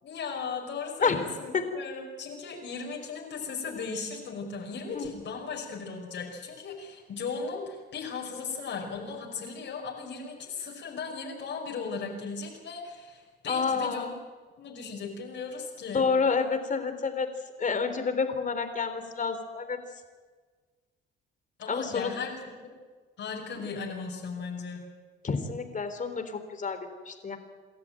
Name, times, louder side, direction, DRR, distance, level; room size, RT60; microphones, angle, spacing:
voice 1, 0.0-14.1 14.6-16.1 21.6-22.7 23.2-24.8, left 5 dB, 70° left, -1 dB, 5.6 m, -37 dB
voice 2, 13.5-14.1 15.9-17.3 17.6-19.8 21.7-22.1 25.2-26.8 27.1-27.4, left 5 dB, 40° left, 8 dB, 3.5 m, -29 dB
28.0 x 13.0 x 9.1 m, 1.5 s
cardioid pair, 90°, 20 cm